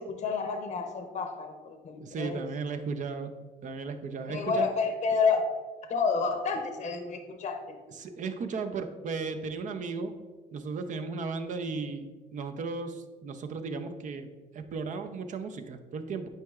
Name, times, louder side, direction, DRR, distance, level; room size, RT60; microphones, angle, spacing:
voice 1, 0.0-2.4 4.3-5.5 5.9-7.6, left 5 dB, 45° left, 5 dB, 0.7 m, -29 dB
voice 2, 2.0-3.3 3.6-4.7 8.0-10.1 10.5-12.0 12.3-14.3 14.5-16.3, right 4 dB, 50° right, 7 dB, 0.6 m, -35 dB
9.1 x 4.7 x 2.4 m, 1.4 s
cardioid pair, 110°, 17 cm